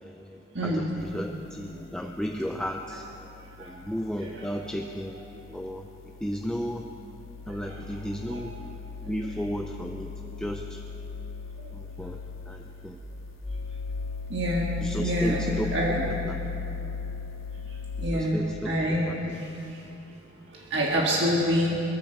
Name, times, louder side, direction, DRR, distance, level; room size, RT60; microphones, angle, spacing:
voice 1, 0.0-3.0 3.6-5.2 5.5-5.9 6.2-6.8 7.5-8.5 9.0-10.1 10.4-10.8 11.7-12.2 12.5-13.0 14.8-15.8 16.1-16.4 18.0-18.7 19.1-19.4, equal, 5° left, 3 dB, 0.5 m, -34 dB
sound 1, 1.0-18.1, left 4 dB, 80° left, 0.7 m, -38 dB
voice 2, 14.3-14.7 15.0-15.4 15.7-16.1 18.0-18.4 18.7-19.1 20.7-21.8, equal, 55° right, -3 dB, 1.8 m, -26 dB
21.0 x 14.5 x 4.6 m, 3.0 s
head